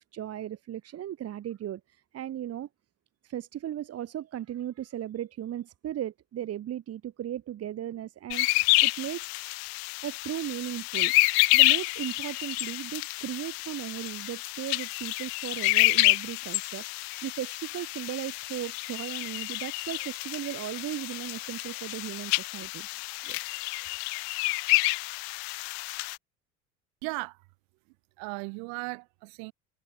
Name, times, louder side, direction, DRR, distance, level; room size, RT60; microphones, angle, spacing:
voice 1, 0.0-2.7 3.2-8.5 8.8-9.5 10.0-16.8 17.2-22.9 23.2-23.4, right 11 dB, 40° right, 2.8 m, -36 dB
sound 1, 8.3-26.2, left 30 dB, 55° left, 0.6 m, -28 dB
voice 2, 27.0-27.4 28.2-29.5, right 40 dB or more, 60° right, 4.0 m, -36 dB
figure-of-eight pair, 60°, 37 cm